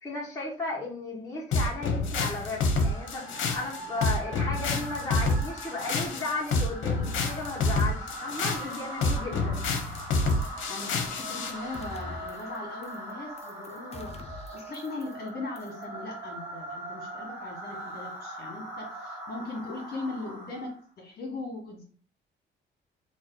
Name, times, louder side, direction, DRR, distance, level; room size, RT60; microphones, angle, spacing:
voice 1, 0.0-9.6, left 3 dB, 15° left, -5 dB, 1.5 m, -35 dB
sound 1, 1.5-11.6, left 3 dB, 75° left, 0.7 m, -28 dB
sound 2, 1.9-20.8, right 1 dB, 10° right, 1.6 m, -41 dB
voice 2, 10.4-21.8, left 2 dB, 50° left, -1 dB, 1.4 m, -39 dB
sound 3, 11.2-11.5 11.7-12.6 12.8-13.1 13.4-15.3 15.6-15.8, left 2 dB, 30° left, 0.6 m, -45 dB
3.0 x 2.5 x 3.8 m, 0.43 s
cardioid pair, 90°, 20 cm